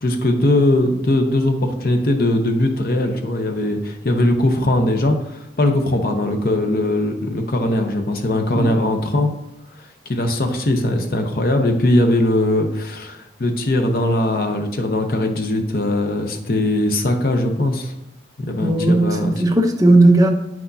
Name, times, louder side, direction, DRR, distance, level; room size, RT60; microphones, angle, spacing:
voice 1, 0.0-9.4 10.1-17.9 18.4-19.4, left 1 dB, 55° left, 4 dB, 0.8 m, -20 dB
voice 2, 18.6-20.3, right 2 dB, 20° right, 3 dB, 0.7 m, -15 dB
8.9 x 6.0 x 2.7 m, 0.89 s
head